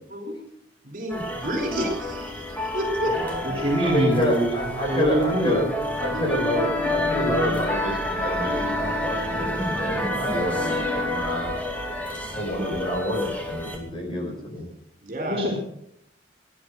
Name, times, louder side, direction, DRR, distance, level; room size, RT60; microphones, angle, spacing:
voice 1, 0.8-3.2 6.1-6.9 15.0-15.5, equal, 50° right, 3 dB, 4.6 m, -31 dB
sound 1, 1.1-13.8, left 1 dB, 10° left, 2.3 m, -28 dB
voice 2, 3.0-3.4 3.8-5.7 6.0-11.6 12.3-14.7, equal, 30° left, 1 dB, 4.8 m, -28 dB
voice 3, 3.6-4.5 4.9-5.6 12.6-12.7 15.3-15.6, equal, 30° right, -1 dB, 3.6 m, -23 dB
18.0 x 10.5 x 6.4 m, 0.70 s
head